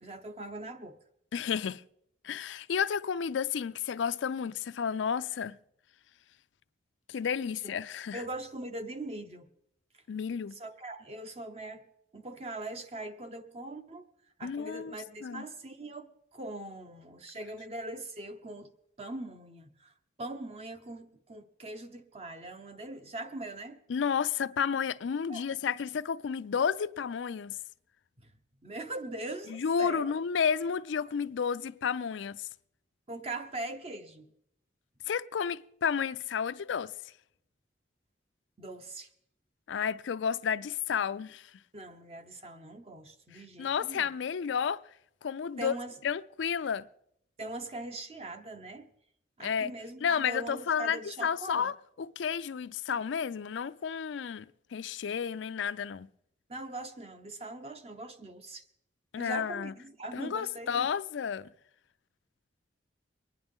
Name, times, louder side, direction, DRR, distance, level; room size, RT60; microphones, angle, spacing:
voice 1, 0.0-1.0 7.6-7.7 8.1-9.5 10.5-11.8 12.1-14.1 14.4-18.7 19.0-19.9 20.2-23.8 25.3-25.6 28.2-28.3 28.6-30.1 33.1-34.3 38.6-39.1 41.7-44.1 45.6-45.9 47.4-48.9 49.4-51.7 56.5-58.6 59.2-60.9, right 2 dB, 35° right, 0.8 m, -41 dB
voice 2, 1.3-1.8 2.2-5.6 7.1-8.2 10.1-10.6 14.4-15.0 15.2-15.5 23.9-27.6 29.5-32.5 35.1-36.9 39.7-41.5 43.3-44.8 45.2-45.7 46.0-46.9 49.4-49.7 50.0-56.1 59.1-59.7 60.1-61.5, left 7 dB, 85° left, 0.4 m, -31 dB
23.5 x 10.0 x 3.6 m
head